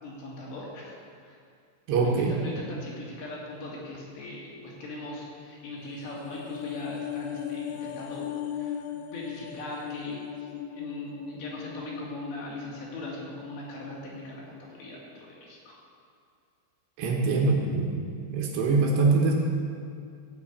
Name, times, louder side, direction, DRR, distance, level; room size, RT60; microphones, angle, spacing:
voice 1, 0.0-1.4 2.0-10.5 10.7-15.7, left 1 dB, 65° left, -5 dB, 4.7 m, -40 dB
voice 2, 1.9-2.4 17.0-18.0 18.3-19.3, right 4 dB, 70° right, 0 dB, 3.2 m, -23 dB
sound 1, 5.8-14.2 14.5-14.7, left 9 dB, 85° left, 2.1 m, -38 dB
16.0 x 6.4 x 8.6 m, 2.3 s
omnidirectional pair, 5.4 m